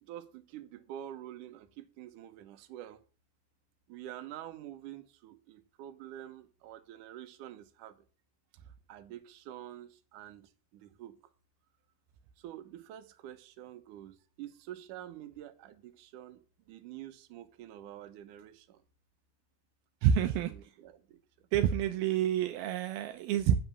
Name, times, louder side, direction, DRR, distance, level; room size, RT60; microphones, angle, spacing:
voice 1, 0.0-3.0 3.9-8.0 8.9-11.2 12.4-18.8 20.2-21.2 21.6-21.8, right 12 dB, 65° right, 2.3 m, -47 dB
voice 2, 20.0-20.5 21.5-23.6, right 9 dB, 80° right, 2.5 m, -28 dB
9.8 x 6.2 x 8.4 m
omnidirectional pair, 4.6 m